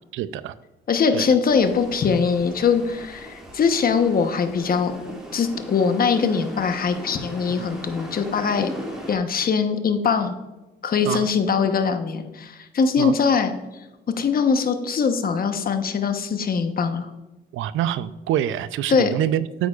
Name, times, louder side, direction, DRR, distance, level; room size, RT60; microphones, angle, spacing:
voice 1, 0.1-0.5 1.1-1.3 11.1-11.3 13.0-13.2 17.5-19.7, right 11 dB, 80° right, 15 dB, 0.5 m, -25 dB
voice 2, 0.9-4.9 5.3-8.7 9.1-10.3 10.8-13.5 14.2-17.1 18.9-19.1, left 5 dB, 50° left, 8 dB, 1.0 m, -22 dB
sound 1, 1.5-9.2, equal, 5° right, 2.4 m, -38 dB
9.4 x 8.2 x 2.4 m, 1.1 s
cardioid pair, 90°, 20 cm